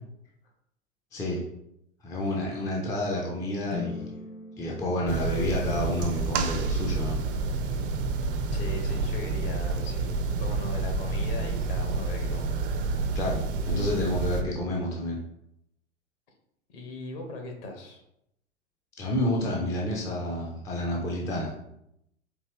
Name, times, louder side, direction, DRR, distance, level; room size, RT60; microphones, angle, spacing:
voice 1, 1.1-1.4 2.0-4.2 4.6-7.2 13.1-15.2 19.0-21.6, left 1 dB, 10° left, -2 dB, 0.4 m, -29 dB
sound 1, 3.7-6.1, left 5 dB, 70° left, 0.6 m, -40 dB
sound 2, 5.1-14.4, right 3 dB, 50° right, 0.5 m, -29 dB
voice 2, 8.5-12.5 16.7-18.0, left 1 dB, 50° left, 2 dB, 1.2 m, -39 dB
4.4 x 2.8 x 3.0 m, 0.78 s
figure-of-eight pair, 95°, 36 cm